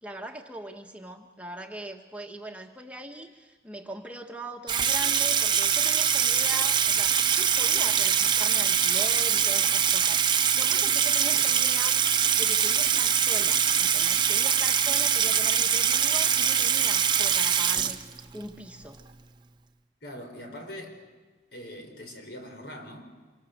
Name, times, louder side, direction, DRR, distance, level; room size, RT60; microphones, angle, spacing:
voice 1, 0.0-19.0, right 1 dB, 10° right, 3 dB, 1.2 m, -41 dB
Water tap faucet / Sink (filling or washing), 4.7-18.4, right 8 dB, 25° right, 0.8 m, -23 dB
voice 2, 20.0-21.0 21.5-23.1, equal, 75° left, 4 dB, 4.6 m, -42 dB
27.0 x 23.0 x 6.6 m, 1.4 s
head